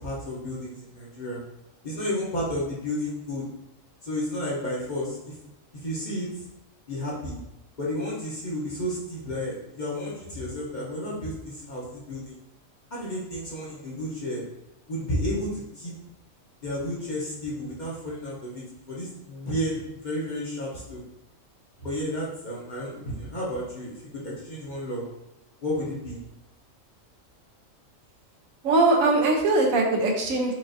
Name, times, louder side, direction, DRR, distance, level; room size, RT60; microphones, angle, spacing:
voice 1, 0.0-1.4 1.8-3.5 4.0-5.3 5.8-6.3 6.9-7.4 7.8-12.4 12.9-14.4 14.9-15.9 16.6-21.0 21.8-25.0 25.6-26.2, left 1 dB, 40° left, -6 dB, 0.8 m, -32 dB
voice 2, 28.6-30.5, right 2 dB, 85° right, 1 dB, 1.1 m, -21 dB
4.8 x 2.5 x 2.5 m, 0.91 s
omnidirectional pair, 1.4 m